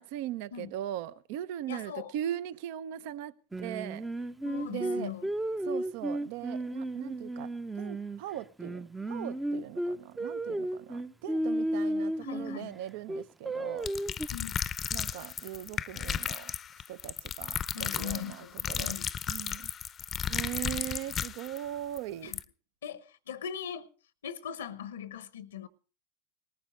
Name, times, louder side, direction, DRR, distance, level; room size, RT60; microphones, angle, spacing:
voice 1, 0.0-4.0 4.7-5.1 5.7-7.5 7.8-13.9 14.9-16.5 16.9-19.0 19.3-19.7 20.3-22.4, right 12 dB, 60° right, 0.6 m, -39 dB
voice 2, 1.7-2.1 4.4-5.3 12.2-12.8 14.3-14.6 17.7-19.1 22.2-22.4 22.8-23.9 24.2-25.7, left 8 dB, 80° left, 0.8 m, -40 dB
Singing, 3.5-8.2 8.6-12.6 13.1-14.3, right 1 dB, 10° right, 0.6 m, -33 dB
sound 1, 13.8-21.6 22.0-22.1 22.3-22.4, left 8 dB, 30° left, 0.6 m, -34 dB
19.0 x 14.5 x 3.2 m
hypercardioid pair, 95°, 0 cm